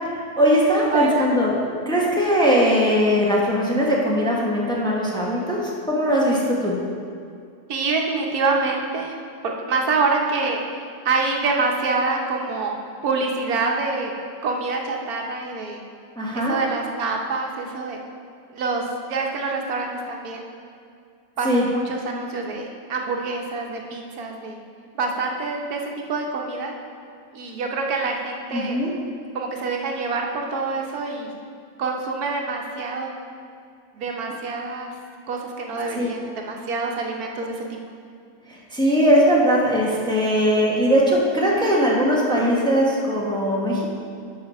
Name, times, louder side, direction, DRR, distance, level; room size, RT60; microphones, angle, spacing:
voice 1, 0.4-1.5 1.8-6.8 16.2-16.6 21.4-21.6 28.5-28.9 35.9-36.1 38.7-43.9, equal, 5° left, -4 dB, 1.1 m, -20 dB
voice 2, 0.9-1.4 7.7-9.2 9.4-12.8 13.0-14.1 14.4-15.8 16.3-18.0 18.5-20.6 21.4-24.6 24.9-26.7 27.3-28.8 29.3-31.3 31.8-33.2 33.9-34.9 35.3-37.7, right 3 dB, 85° right, 1 dB, 1.4 m, -26 dB
11.0 x 5.6 x 4.2 m, 2.3 s
omnidirectional pair, 1.5 m